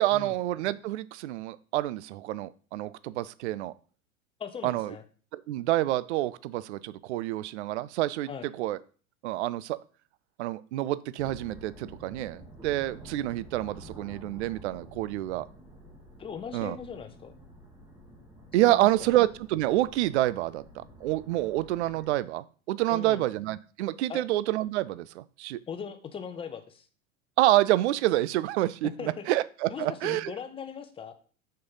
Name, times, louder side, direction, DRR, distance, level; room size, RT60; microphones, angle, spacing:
voice 1, 0.0-3.7 4.6-4.9 5.3-8.3 8.6-8.8 9.2-9.8 10.4-15.5 16.5-16.8 18.5-20.6 21.0-25.6 27.4-30.3, right 15 dB, 55° right, 18 dB, 0.5 m, -28 dB
voice 2, 4.4-5.0 8.3-8.5 16.2-17.3 18.6-18.9 22.9-23.2 24.1-24.2 25.7-26.9 28.8-29.3 29.7-31.1, left 7 dB, 15° left, 8 dB, 0.8 m, -39 dB
sound 1, 11.2-22.2, right 1 dB, 10° right, 1.6 m, -50 dB
6.3 x 4.5 x 5.4 m, 0.40 s
figure-of-eight pair, 85°, 42 cm